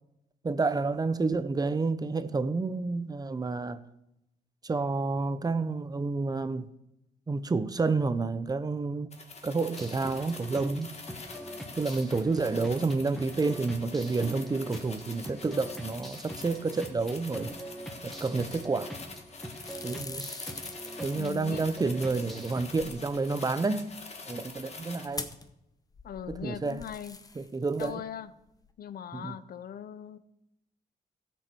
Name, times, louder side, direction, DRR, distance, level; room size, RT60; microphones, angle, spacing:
voice 1, 0.4-3.8 4.6-6.7 7.3-9.1 9.4-10.9 11.7-17.5 18.0-19.0 19.8-20.3 21.0-23.9 24.3-25.3 26.3-26.8 27.4-28.0 29.1-29.4, right 3 dB, 25° right, 0.6 m, -29 dB
sound 1, 9.1-25.1, left 3 dB, 40° left, 1.4 m, -46 dB
sound 2, 9.7-22.6, right 1 dB, ahead, 1.4 m, -43 dB
sound 3, 18.5-19.0 19.3-25.6 25.9-28.2 28.4-28.7, left 3 dB, 20° left, 0.8 m, -45 dB
voice 2, 21.1-21.6 26.0-27.2 27.8-28.3 28.8-30.2, left 9 dB, 65° left, 0.6 m, -40 dB
16.0 x 6.4 x 4.5 m
cardioid pair, 110°, 17 cm